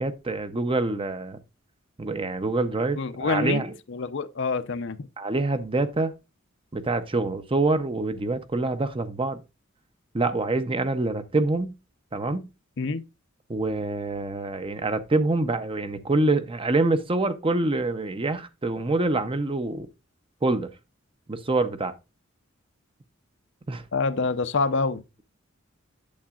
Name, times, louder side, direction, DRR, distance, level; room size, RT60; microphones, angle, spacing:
voice 1, 0.0-1.4 2.0-3.8 5.2-6.1 6.7-9.4 10.1-11.8 12.1-12.4 13.5-19.9 20.4-20.7 21.3-21.9 23.7-23.8, right 2 dB, 25° right, 0.7 m, -26 dB
voice 2, 2.9-3.6 3.9-5.0 12.8-13.0 23.9-25.2, left 4 dB, 60° left, 0.6 m, -26 dB
8.6 x 7.2 x 2.4 m
head